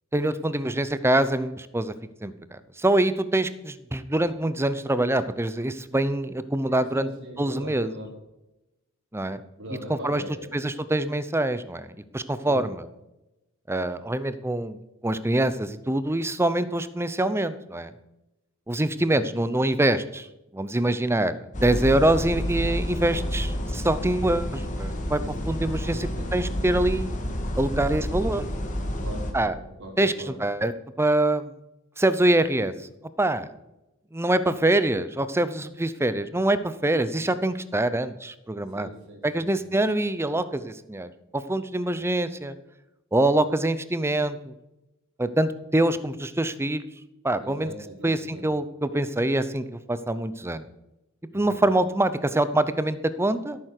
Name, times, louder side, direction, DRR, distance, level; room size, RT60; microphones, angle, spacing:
voice 1, 0.1-1.9 2.2-7.1 7.4-7.9 9.1-9.4 10.0-10.2 10.5-11.9 12.1-12.8 13.7-14.8 15.0-17.9 18.7-20.3 20.5-27.2 27.6-28.5 29.3-29.5 30.0-30.7 31.0-31.5 32.0-32.7 33.2-33.5 34.1-38.9 39.2-42.6 43.1-44.5 45.2-46.9 47.2-47.7 48.0-50.6 51.3-53.6, right 1 dB, 10° right, 14 dB, 0.7 m, -25 dB
voice 2, 6.7-8.1 9.6-10.6 12.4-12.6 18.9-19.2 25.9-26.3 29.0-30.3 38.7-39.8 41.9-42.0 47.4-48.4 51.3-51.6, equal, 60° right, -2 dB, 4.2 m, -41 dB
sound 1, 21.5-29.3, equal, 35° left, 2.0 m, -29 dB
14.5 x 9.1 x 6.6 m, 0.94 s
head